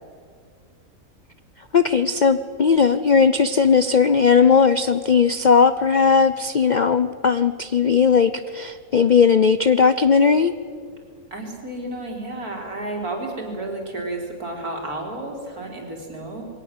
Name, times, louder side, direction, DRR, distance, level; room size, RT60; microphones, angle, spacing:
voice 1, 1.7-10.5, left 6 dB, 60° left, 12 dB, 0.4 m, -17 dB
voice 2, 11.3-16.4, right 2 dB, 80° right, 0 dB, 4.3 m, -31 dB
22.5 x 18.0 x 7.3 m, 2.1 s
omnidirectional pair, 1.6 m